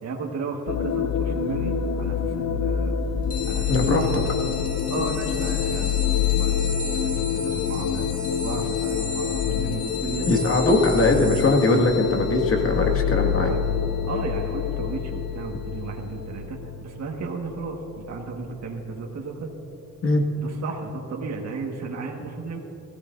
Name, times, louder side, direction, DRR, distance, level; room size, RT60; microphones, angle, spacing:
voice 1, 0.0-3.0 3.5-4.3 4.9-8.1 8.4-10.3 13.5-13.6 14.1-19.5 20.4-22.6, right 4 dB, 60° right, 0 dB, 1.8 m, -34 dB
sound 1, 0.7-18.2, left 8 dB, 65° left, 0.8 m, -26 dB
sound 2, 3.3-15.4, left 4 dB, 30° left, 2.2 m, -36 dB
voice 2, 3.7-4.1 10.3-13.6 20.0-20.2, left 2 dB, 45° left, 2 dB, 2.1 m, -21 dB
21.0 x 15.0 x 2.7 m, 2.6 s
cardioid pair, 90°, 30 cm